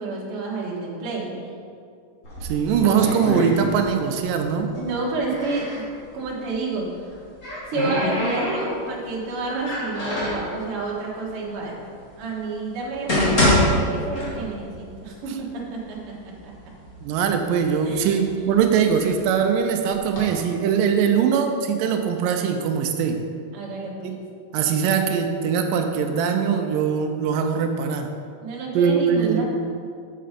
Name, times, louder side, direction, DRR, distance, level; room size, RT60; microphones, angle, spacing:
voice 1, 0.0-1.4 4.7-5.9 6.1-6.9 7.7-11.8 12.2-16.5 17.8-18.3 23.5-24.1 28.4-29.4, right 3 dB, 50° right, -4 dB, 1.9 m, -30 dB
sound 1, 2.2-4.1 4.4-5.8 7.0-9.0 9.6-10.5 11.3-11.4 12.0-12.1 12.8-14.7 15.1-15.2 15.9-16.0 16.3-17.0 17.5-19.2 19.8-20.2, left 1 dB, 25° left, 2.0 m, -25 dB
voice 2, 2.4-4.7 17.0-23.2 24.0-24.2 24.5-28.1 28.7-29.4, right 7 dB, 85° right, 5 dB, 2.2 m, -21 dB
6.8 x 6.5 x 5.0 m, 2.3 s
omnidirectional pair, 3.8 m